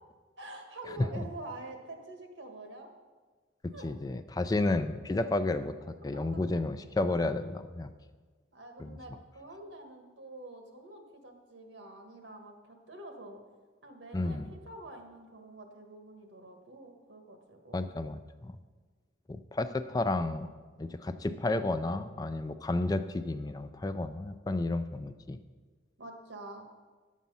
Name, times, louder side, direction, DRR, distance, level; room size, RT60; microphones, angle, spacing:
voice 1, 0.4-2.9 3.7-3.9 6.0-6.5 8.5-13.4 13.8-17.9 26.0-26.6, right 2 dB, 80° right, 4 dB, 1.6 m, -47 dB
voice 2, 3.8-5.8 6.0-7.9 8.8-9.0 14.1-14.4 17.7-18.6 19.3-20.5 20.8-25.4, left 2 dB, 20° left, 10 dB, 0.3 m, -32 dB
10.5 x 7.3 x 5.5 m, 1.4 s
head